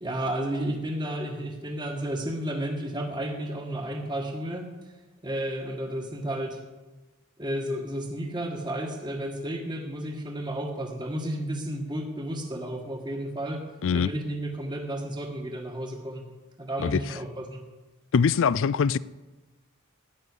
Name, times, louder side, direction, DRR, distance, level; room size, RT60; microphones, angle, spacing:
voice 1, 0.0-4.7 5.2-6.6 7.4-13.6 13.9-16.2 16.6-17.6, right 1 dB, 20° right, 1.5 m, -32 dB
voice 2, 18.1-19.0, left 6 dB, 60° left, 0.4 m, -22 dB
12.0 x 11.0 x 8.2 m
head